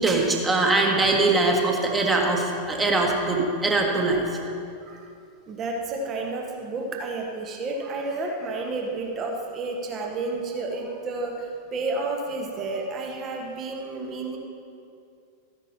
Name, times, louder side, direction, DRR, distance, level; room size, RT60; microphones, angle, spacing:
voice 1, 0.0-4.2, right 2 dB, 15° right, 0 dB, 1.5 m, -22 dB
voice 2, 5.5-14.4, right 3 dB, 30° right, 1 dB, 1.2 m, -31 dB
14.0 x 10.5 x 2.9 m, 2.4 s
figure-of-eight pair, 90°, 0 cm